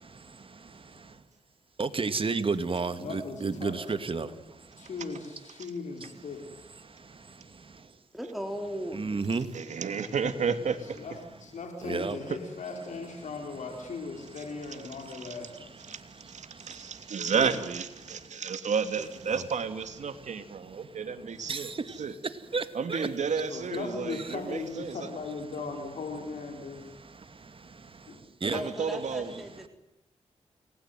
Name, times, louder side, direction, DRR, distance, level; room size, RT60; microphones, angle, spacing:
voice 1, 1.8-4.3 8.9-9.5 11.8-12.2 17.4-17.5 19.3-19.4 21.5-21.6 22.5-22.6 22.9-23.1 28.4-28.6, right 4 dB, 45° right, 2.5 m, -30 dB
voice 2, 3.0-3.9 4.8-6.4 10.8-15.7 23.5-26.9 28.1-28.2, left 4 dB, 85° left, 4.5 m, -38 dB
voice 3, 8.1-9.0 28.5-29.7, equal, ahead, 4.1 m, -36 dB
voice 4, 9.5-11.0 15.2-15.3 15.9-16.0 16.3-21.7 22.0-22.1 22.7-25.1 28.4-29.3, right 6 dB, 75° right, 2.9 m, -32 dB
30.0 x 21.0 x 9.4 m
cardioid pair, 70°, 12 cm